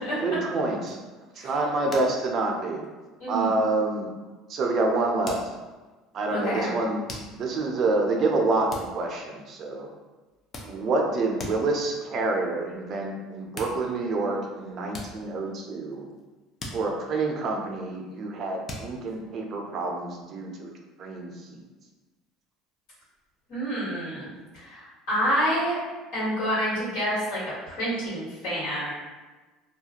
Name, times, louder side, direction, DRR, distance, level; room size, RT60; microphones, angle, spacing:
voice 1, 0.2-2.8 3.3-4.1 4.5-5.4 6.1-7.0 7.3-9.9 10.6-16.1 16.7-20.7 21.0-21.6, right 3 dB, 45° right, 1 dB, 0.5 m, -27 dB
sound 1, 0.9-1.4 1.9-2.3 2.6-3.0 3.6-3.7 5.3-5.9 7.1-7.6 8.7-9.7 10.3-11.1 11.4-11.8 13.2-13.3 13.5-14.3 14.9-16.3 16.6-17.8 18.7-19.3, left 2 dB, 30° left, 0.5 m, -41 dB
voice 2, 6.3-6.7 23.5-24.2 24.5-25.8 26.1-28.9, equal, 70° left, -9 dB, 1.5 m, -28 dB
2.4 x 2.2 x 2.8 m, 1.2 s
supercardioid pair, 115°, 0 cm